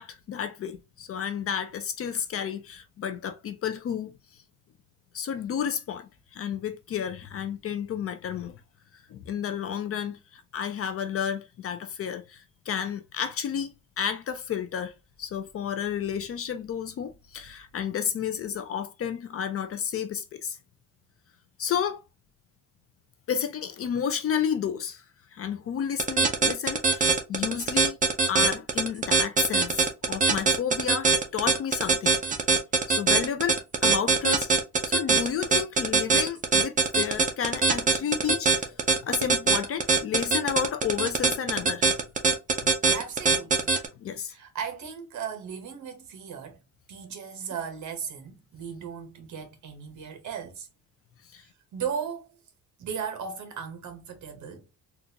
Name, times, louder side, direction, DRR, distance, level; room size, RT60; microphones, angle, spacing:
voice 1, 0.0-4.1 5.1-8.6 9.1-14.9 15.2-20.6 21.6-22.0 23.3-25.0 25.3-28.0 28.3-32.1 32.9-34.6 34.8-41.9 44.0-44.3 51.3-51.4, left 8 dB, 40° left, 0.4 m, -31 dB
sound 1, 26.0-43.9, right 4 dB, 25° right, 0.5 m, -22 dB
voice 2, 42.8-43.7 44.3-46.6 46.9-50.7 51.7-52.3 52.8-54.7, right 7 dB, 55° right, 1.1 m, -36 dB
3.8 x 2.4 x 2.7 m
cardioid pair, 170°, 34 cm